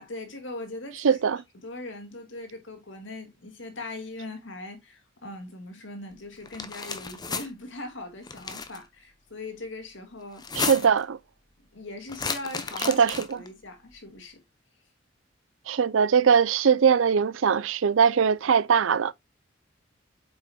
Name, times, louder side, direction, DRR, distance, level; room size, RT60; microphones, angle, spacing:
voice 1, 0.0-1.2 1.6-10.9 11.6-13.0 13.3-14.4, left 2 dB, 75° left, 2.3 m, -40 dB
voice 2, 1.0-1.4 10.6-11.2 12.9-13.1 15.7-19.1, right 6 dB, 90° right, 0.5 m, -21 dB
sound 1, 6.4-7.5 8.2-8.8 10.3-11.0 12.1-13.5, left 5 dB, 20° left, 0.7 m, -33 dB
7.9 x 5.5 x 2.3 m
head